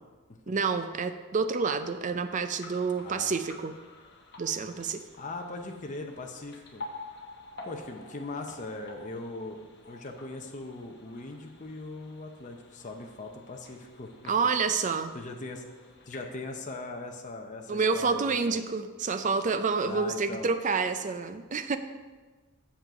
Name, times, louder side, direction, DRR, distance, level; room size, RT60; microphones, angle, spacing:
voice 1, 0.5-3.7 4.4-5.0 14.3-15.1 17.7-21.8, right 5 dB, 35° right, 9 dB, 0.4 m, -28 dB
sound 1, 2.3-16.2, left 3 dB, 50° left, 1.1 m, -49 dB
voice 2, 3.0-3.4 5.2-6.8 7.6-14.3 15.1-15.6 16.0-18.6 19.8-20.5, left 2 dB, 35° left, 3 dB, 0.7 m, -40 dB
7.5 x 5.8 x 5.0 m, 1.3 s
head